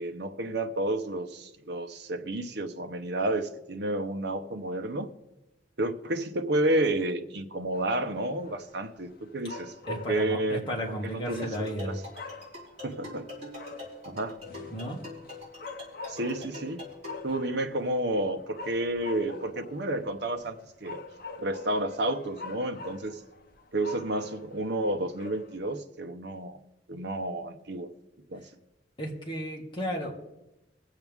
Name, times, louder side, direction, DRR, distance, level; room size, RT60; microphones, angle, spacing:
voice 1, 0.0-5.1 5.8-12.0 12.8-13.3 14.0-14.4 16.1-16.8 17.2-21.0 21.4-23.2 23.7-26.6 26.9-27.9 28.3-28.4, right 1 dB, 65° right, 6 dB, 0.9 m, -31 dB
sound 1, 7.7-25.8, left 3 dB, 55° left, 1.0 m, -46 dB
voice 2, 9.9-12.0 14.7-15.0 29.0-30.1, equal, 25° left, -1 dB, 2.2 m, -33 dB
sound 2, 11.4-17.3, left 2 dB, 40° right, 4.5 m, -44 dB
21.5 x 7.8 x 3.6 m, 0.97 s
head